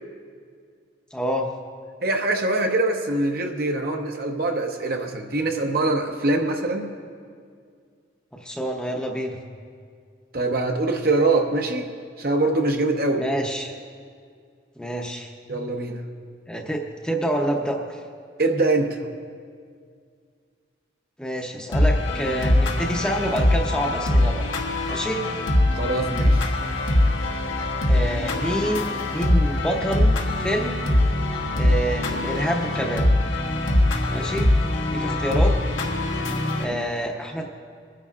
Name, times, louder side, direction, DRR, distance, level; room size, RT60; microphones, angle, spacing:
voice 1, 1.1-1.5 8.4-9.4 13.2-13.7 14.8-15.3 16.5-18.0 21.2-24.5 24.9-25.2 27.9-30.8 31.5-33.1 34.1-35.5 36.6-37.4, equal, 5° left, 1 dB, 0.7 m, -27 dB
voice 2, 2.0-6.9 10.3-11.9 12.2-13.2 15.5-16.0 18.4-19.0 25.8-26.5, right 2 dB, 50° right, 3 dB, 0.9 m, -23 dB
sound 1, 21.7-36.6, left 1 dB, 85° left, 1.3 m, -22 dB
25.5 x 9.8 x 2.4 m, 2.1 s
head